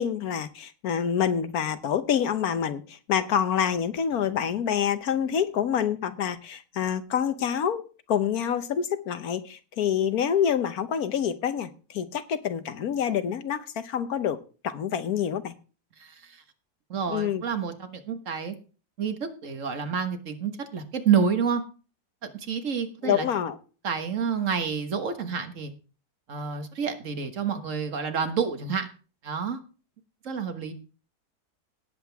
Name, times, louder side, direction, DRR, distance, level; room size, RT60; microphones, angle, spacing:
voice 1, 0.0-15.5 17.1-17.4 23.0-23.6, left 8 dB, 70° left, 11 dB, 1.3 m, -27 dB
voice 2, 16.0-16.4 16.9-18.6 19.0-21.6 22.2-23.3 23.8-25.7 26.3-28.9 29.2-29.6 30.2-30.7, right 6 dB, 55° right, 7 dB, 1.7 m, -29 dB
18.0 x 7.8 x 3.5 m, 0.36 s
omnidirectional pair, 1.7 m